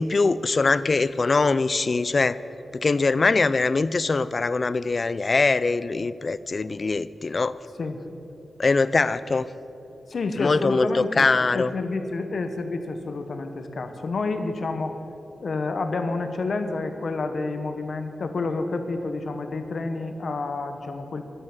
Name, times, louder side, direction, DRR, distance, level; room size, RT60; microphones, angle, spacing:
voice 1, 0.0-2.4 2.7-7.6 8.6-9.5 10.4-11.7, left 3 dB, 40° left, 16 dB, 0.4 m, -22 dB
voice 2, 10.1-11.3 11.5-15.0 15.4-21.2, left 3 dB, 60° left, 7 dB, 1.1 m, -29 dB
12.0 x 11.0 x 7.3 m, 3.0 s
wide cardioid pair, 100°, 0 cm